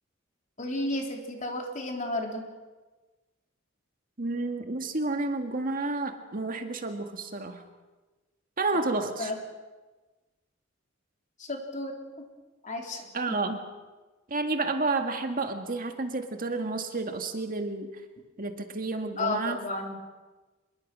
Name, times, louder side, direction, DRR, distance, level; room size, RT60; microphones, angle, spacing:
voice 1, 0.6-2.4 9.2-9.4 11.4-12.3 12.6-13.4 19.2-19.9, left 2 dB, 40° left, 1 dB, 3.9 m, -33 dB
voice 2, 4.2-7.6 8.6-9.3 13.1-13.6 14.3-18.0 18.4-19.6, right 3 dB, 45° right, 5 dB, 1.9 m, -30 dB
26.5 x 22.0 x 6.3 m, 1.2 s
head